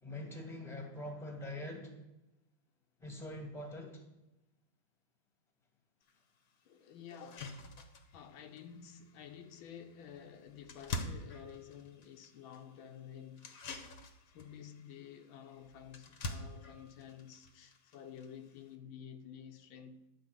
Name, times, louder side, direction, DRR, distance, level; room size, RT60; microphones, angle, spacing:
voice 1, 0.0-1.9 3.0-4.0, left 1 dB, ahead, 1.5 m, -44 dB
sound 1, 6.1-6.2 6.6-6.7 7.1-18.7, left 3 dB, 50° left, 1.3 m, -47 dB
voice 2, 6.7-7.6 8.1-13.8 14.3-20.1, left 8 dB, 85° left, 1.6 m, -51 dB
11.0 x 4.9 x 8.0 m
omnidirectional pair, 2.2 m